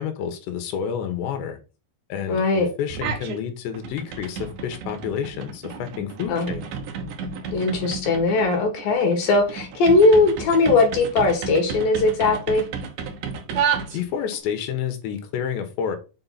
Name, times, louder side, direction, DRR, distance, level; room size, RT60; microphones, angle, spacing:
voice 1, 0.0-1.6 2.1-6.7 13.9-16.0, left 8 dB, 85° left, 3.6 m, -29 dB
voice 2, 2.3-2.7 6.3-6.5 7.5-12.7, left 3 dB, 60° left, 3.5 m, -19 dB
sound 1, 2.9-3.4 3.7-14.4, right 6 dB, 70° right, 2.1 m, -32 dB
7.6 x 5.0 x 4.1 m
omnidirectional pair, 4.9 m